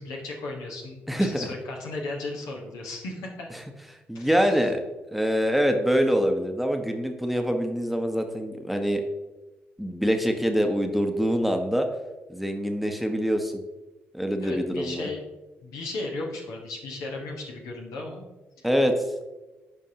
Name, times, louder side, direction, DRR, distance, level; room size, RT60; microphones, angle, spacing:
voice 1, 0.0-3.5 4.1-4.4 14.4-15.2 15.6-18.2, left 2 dB, 70° left, 0 dB, 1.3 m, -35 dB
voice 2, 1.1-1.5 4.1-4.8 5.1-9.0 9.8-11.9 12.3-13.6 14.1-15.1 18.6-19.0, equal, ahead, 5 dB, 1.0 m, -24 dB
13.0 x 4.6 x 2.9 m, 1.1 s
hypercardioid pair, 40°, 6 cm